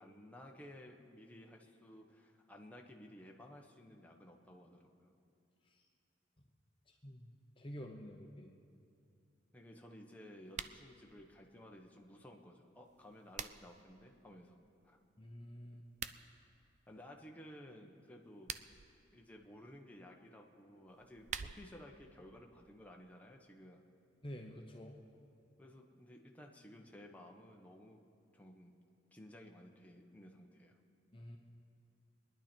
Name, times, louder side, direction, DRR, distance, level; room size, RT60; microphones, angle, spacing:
voice 1, 0.0-5.1 9.5-14.6 14.8-15.0 16.9-18.6 19.1-23.8 25.6-28.1 28.3-28.7 29.1-30.8, left 1 dB, 10° left, 0 dB, 1.1 m, -56 dB
voice 2, 6.9-7.3 7.6-8.6 15.2-15.8 24.2-25.0 31.1-31.4, equal, 30° left, 2 dB, 0.9 m, -49 dB
sound 1, 10.5-10.8 12.9-13.8 15.8-16.2 18.2-18.9 20.9-21.9, right 8 dB, 40° right, 0.4 m, -45 dB
25.5 x 10.5 x 4.4 m, 2.4 s
head